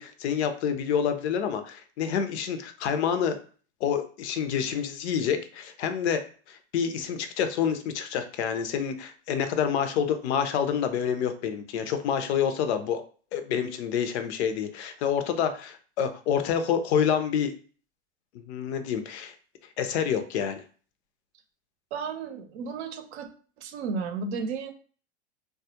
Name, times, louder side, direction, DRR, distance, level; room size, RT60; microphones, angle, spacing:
voice 1, 0.0-3.4 3.8-6.2 6.5-13.0 13.3-17.5 18.4-19.3 19.8-20.6, left 8 dB, 70° left, 8 dB, 0.5 m, -28 dB
voice 2, 21.9-23.3 23.6-24.7, right 5 dB, 70° right, 7 dB, 0.6 m, -33 dB
2.3 x 2.1 x 2.8 m, 0.40 s
hypercardioid pair, 110°, 34 cm